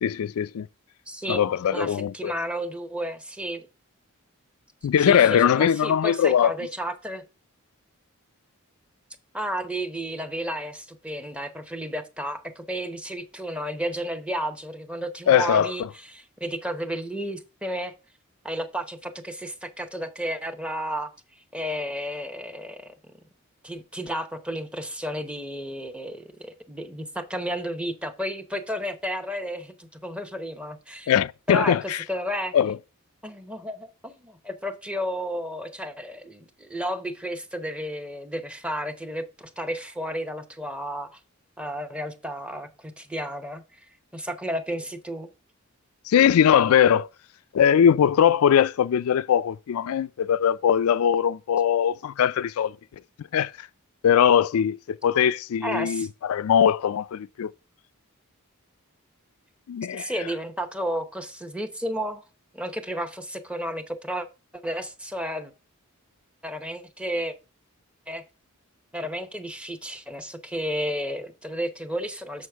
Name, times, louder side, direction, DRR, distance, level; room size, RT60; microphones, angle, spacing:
voice 1, 0.0-0.7 1.3-2.3 4.8-6.5 15.3-15.7 31.1-32.0 32.5-32.8 46.1-47.1 47.5-52.7 53.3-53.5 54.0-57.5 59.7-60.1, left 8 dB, 75° left, 0.3 m, -21 dB
voice 2, 1.1-3.7 5.0-7.2 9.3-17.9 18.4-21.1 21.5-22.9 23.6-31.1 31.5-32.6 33.2-41.2 41.6-43.6 44.1-45.3 55.6-56.1 59.9-62.2 62.5-64.3 64.6-65.5 66.4-67.3 68.1-68.2 68.9-72.5, equal, 5° right, 0.8 m, -32 dB
7.1 x 6.3 x 3.4 m
head